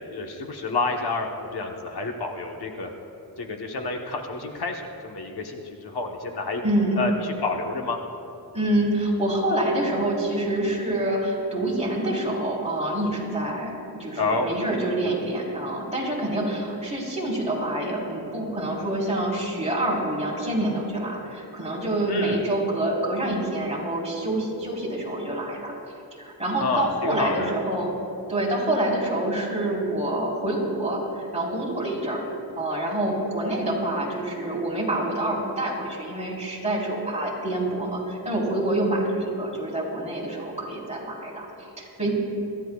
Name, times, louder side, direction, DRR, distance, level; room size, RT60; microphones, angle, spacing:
voice 1, 0.0-2.9 3.4-6.6 7.0-8.0 14.2-14.5 22.1-22.4 26.6-27.5, left 3 dB, 75° left, 2 dB, 1.2 m, -29 dB
voice 2, 6.6-7.0 8.5-25.7 26.2-27.9 28.3-32.2 32.6-42.1, right 1 dB, 15° right, -4 dB, 3.9 m, -27 dB
25.5 x 13.5 x 2.4 m, 2.8 s
wide cardioid pair, 95°, 39 cm